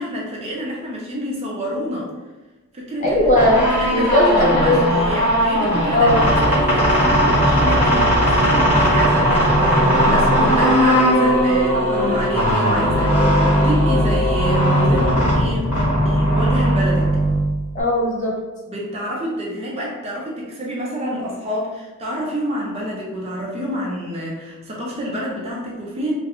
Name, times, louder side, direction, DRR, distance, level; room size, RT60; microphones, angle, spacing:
voice 1, 0.0-2.1 2.7-3.4 3.8-6.1 6.5-17.1 18.7-26.1, equal, 30° right, -3 dB, 0.4 m, -28 dB
voice 2, 3.0-4.8 5.9-6.3 17.7-18.4, left 1 dB, 35° left, -3 dB, 0.5 m, -17 dB
sound 1, 3.2-17.8, equal, 10° right, 0.9 m, -18 dB
sound 2, 5.6-6.7 7.0-8.6 8.9-11.4 11.9-13.6, right 2 dB, 50° left, 0.9 m, -36 dB
sound 3, 6.1-15.2, equal, 90° right, 0.6 m, -24 dB
2.3 x 2.2 x 2.9 m, 1.2 s
head